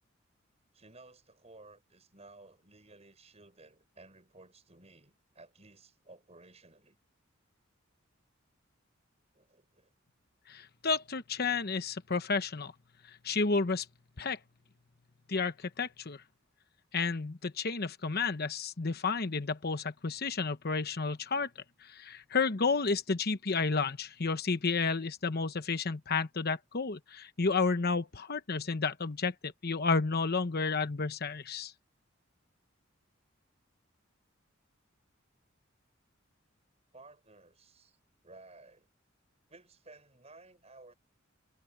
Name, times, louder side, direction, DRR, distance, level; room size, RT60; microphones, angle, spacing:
voice 1, 0.7-7.0 9.3-9.9 36.9-38.0 38.2-38.9 39.5-40.9, right 2 dB, 35° right, 6.5 m, -56 dB
voice 2, 10.5-12.7 13.1-13.9 14.2-14.4 15.3-16.2 16.9-21.5 21.8-31.7, left 4 dB, 50° left, 1.0 m, -31 dB
head